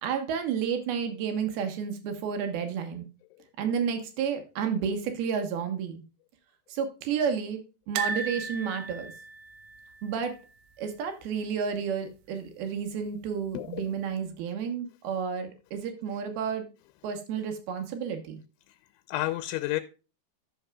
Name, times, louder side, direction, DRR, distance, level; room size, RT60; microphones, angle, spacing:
voice 1, 0.0-3.1 3.6-6.0 6.7-7.6 7.9-9.1 10.0-10.4 10.8-16.6 17.0-18.4, right 7 dB, 65° right, 2.9 m, -31 dB
sound 1, 8.0-11.0 11.3-11.5 11.7-11.8 13.1-13.6 14.1-14.2, right 4 dB, 80° right, 2.9 m, -36 dB
voice 2, 13.5-13.9 19.1-19.8, left 16 dB, 85° left, 3.0 m, -30 dB
13.5 x 6.5 x 2.3 m
omnidirectional pair, 5.3 m